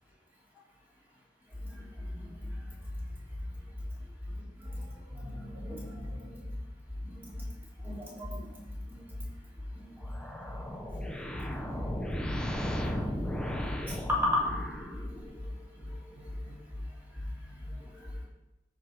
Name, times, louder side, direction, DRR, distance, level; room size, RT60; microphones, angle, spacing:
voice 1, 1.7-2.6 4.6-6.4 7.0-7.5 7.8-8.6 8.9-9.3 9.7-10.2 10.6-11.1 11.5-12.0 12.3-13.1 14.1-15.5 15.8-16.6 17.2-18.3, left 1 dB, 10° right, -6 dB, 3.3 m, -37 dB
sound 1, 10.0-15.5, equal, 5° left, 0.9 m, -36 dB
13.0 x 4.9 x 5.4 m, 0.96 s
head